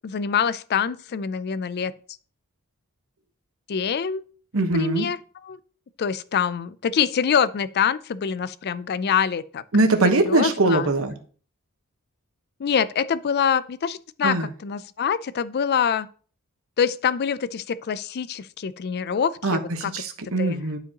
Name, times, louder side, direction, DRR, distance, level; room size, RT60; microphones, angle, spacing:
voice 1, 0.0-1.9 3.7-4.2 4.7-5.2 5.4-5.6 6.0-9.6 10.0-10.9 12.6-14.4 14.6-16.1 16.8-19.9 20.4-20.6, left 7 dB, 45° left, 0.4 m, -25 dB
voice 2, 4.5-5.1 9.7-11.1 14.2-14.5 19.4-19.6 19.9-20.8, right 2 dB, 65° right, 1.1 m, -21 dB
11.5 x 5.0 x 2.9 m
head